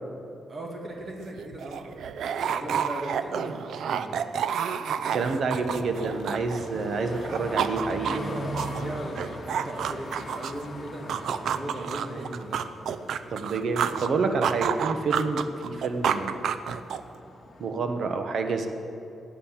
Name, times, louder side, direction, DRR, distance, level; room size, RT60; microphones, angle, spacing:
voice 1, 0.5-1.9 2.3-4.2 8.1-13.1, right 1 dB, 30° right, 0 dB, 2.3 m, -38 dB
sound 1, 1.0-1.1 1.3-6.9 7.2-10.7 11.1-14.1 14.4-17.2, right 8 dB, 75° right, 0.5 m, -30 dB
voice 2, 5.1-8.3 13.3-16.4 17.6-18.7, right 4 dB, 55° right, 6 dB, 1.2 m, -28 dB
sound 2, 5.2-17.7, left 1 dB, 30° left, 2.0 m, -42 dB
16.0 x 9.3 x 7.4 m, 2.7 s
wide cardioid pair, 165°, 0 cm